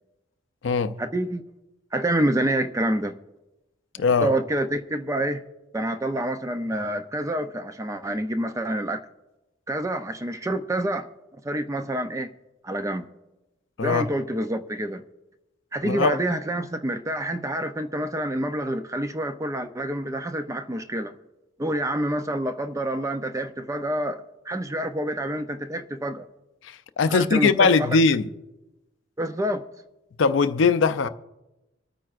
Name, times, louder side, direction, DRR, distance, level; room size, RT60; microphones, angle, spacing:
voice 1, 1.0-1.4 1.9-3.2 4.2-5.4 5.7-9.0 9.7-11.1 11.4-12.3 12.6-13.1 13.8-15.0 15.7-21.1 21.6-26.3 27.0-28.0 29.2-29.6, right 1 dB, 15° right, 0.5 m, -27 dB
voice 2, 4.0-4.3 13.8-14.1 15.8-16.2 26.6-28.3 30.2-31.1, left 4 dB, 70° left, 0.5 m, -20 dB
26.0 x 9.0 x 2.5 m
head